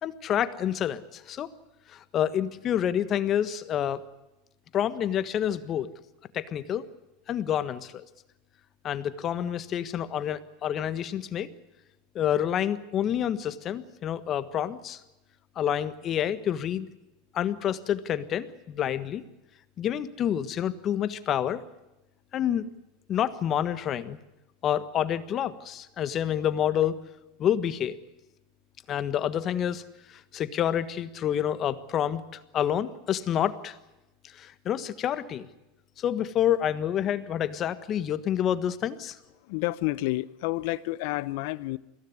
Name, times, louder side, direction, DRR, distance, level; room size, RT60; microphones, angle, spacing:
voice 1, 0.0-1.5 1.9-4.0 4.7-5.9 6.3-6.8 7.3-8.0 8.8-11.5 12.1-15.0 15.5-16.9 17.3-19.2 19.8-21.6 22.3-22.6 23.1-24.2 24.6-27.0 27.4-28.0 28.9-29.8 30.1-32.2 32.5-33.8 34.3-35.5 36.0-39.2, left 10 dB, 40° left, 1.5 m, -28 dB
voice 2, 39.4-41.8, left 19 dB, 65° left, 0.9 m, -30 dB
22.5 x 16.5 x 9.7 m
supercardioid pair, 115°, 0 cm